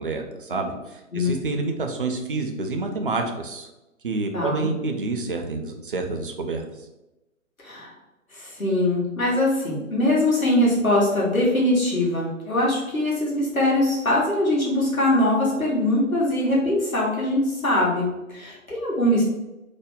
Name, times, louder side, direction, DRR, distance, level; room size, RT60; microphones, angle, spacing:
voice 1, 0.0-3.7 4.0-6.6, right 3 dB, 45° right, 4 dB, 0.4 m, -28 dB
voice 2, 4.3-4.7 7.6-7.9 8.3-19.2, left 1 dB, 90° left, -5 dB, 1.4 m, -22 dB
2.9 x 2.1 x 3.5 m, 0.99 s
figure-of-eight pair, 130°, 41 cm